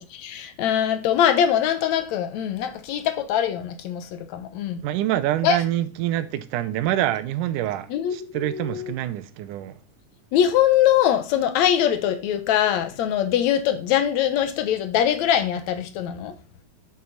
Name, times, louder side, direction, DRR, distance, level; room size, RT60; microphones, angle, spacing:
voice 1, 0.0-4.8 5.4-5.6 7.9-8.9 10.3-16.4, left 10 dB, 70° left, 2.2 m, -22 dB
voice 2, 4.8-9.8, right 13 dB, 85° right, 2.3 m, -26 dB
9.7 x 5.9 x 4.1 m
omnidirectional pair, 3.6 m